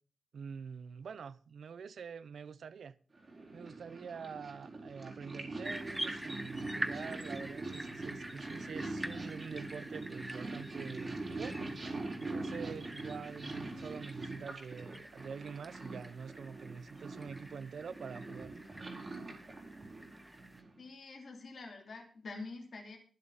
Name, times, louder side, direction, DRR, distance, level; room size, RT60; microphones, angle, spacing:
voice 1, 0.3-3.0 3.5-11.6 12.2-18.6, right 6 dB, 70° right, 0.7 m, -46 dB
Purr, 3.2-20.8, right 2 dB, 30° right, 3.8 m, -43 dB
sound 1, 5.6-20.6, right 1 dB, 5° right, 0.9 m, -46 dB
voice 2, 20.8-23.0, left 3 dB, 50° left, 3.2 m, -46 dB
22.5 x 7.6 x 4.1 m
wide cardioid pair, 175°, 0 cm